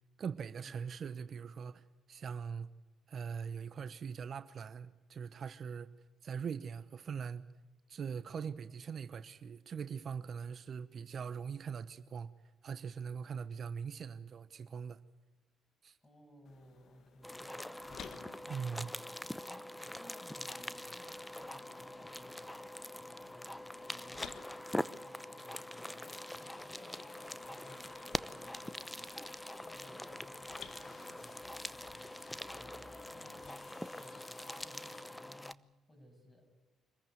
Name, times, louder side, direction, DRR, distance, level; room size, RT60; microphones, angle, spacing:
voice 1, 0.2-2.7 3.1-5.9 6.2-7.5 7.9-12.3 12.6-15.0 15.8-16.0 18.5-18.9, right 6 dB, 55° right, 0.9 m, -42 dB
voice 2, 16.0-17.6 17.8-18.9 19.5-19.7 20.0-22.6 22.9-24.4 24.7-26.1 26.4-27.9 28.3-29.3 29.6-31.9 32.4-33.6 33.9-35.6 35.9-36.5, equal, 25° left, 7.9 m, -60 dB
sound 1, 16.4-34.5, left 7 dB, 65° left, 1.4 m, -58 dB
sound 2, 17.2-35.5, left 1 dB, 10° left, 0.8 m, -44 dB
sound 3, 26.3-35.0, left 3 dB, 45° left, 3.2 m, -58 dB
25.5 x 14.5 x 9.3 m
supercardioid pair, 65°, 0 cm